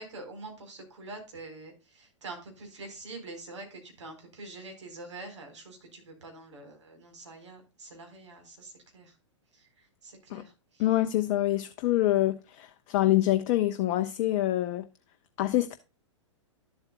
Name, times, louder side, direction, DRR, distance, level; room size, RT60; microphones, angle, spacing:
voice 1, 0.0-9.2 9.5-11.0, right 2 dB, 65° right, 4.2 m, -45 dB
voice 2, 10.8-14.9 15.4-15.8, left 14 dB, 35° left, 0.6 m, -26 dB
12.0 x 7.9 x 2.2 m
figure-of-eight pair, 105°, 16 cm